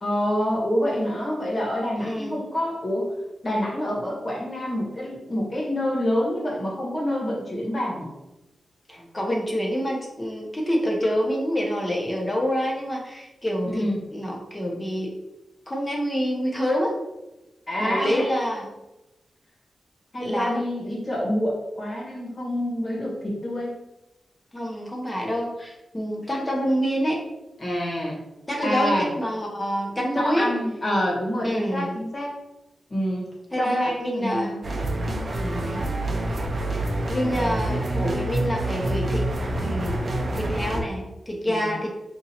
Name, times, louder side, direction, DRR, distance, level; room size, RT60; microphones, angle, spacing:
voice 1, 0.0-3.2 3.4-8.1 13.7-14.0 17.7-18.3 20.1-23.8 27.6-28.2 28.6-29.1 30.1-32.3 32.9-34.6 35.4-35.8 41.5-41.7, equal, 35° left, -3 dB, 1.3 m, -27 dB
voice 2, 2.0-2.4 8.9-13.8 14.1-15.1 15.7-16.9 17.8-18.7 20.2-20.6 24.5-27.2 28.5-30.5 31.4-31.9 33.5-34.6 35.6-35.9 36.7-36.8 37.1-39.2 39.6-40.0 40.3-41.9, equal, 15° left, -1 dB, 0.8 m, -27 dB
sound 1, 34.6-40.8, right 1 dB, 45° right, 0.6 m, -27 dB
2.7 x 2.7 x 4.2 m, 0.98 s
wide cardioid pair, 90°, 0 cm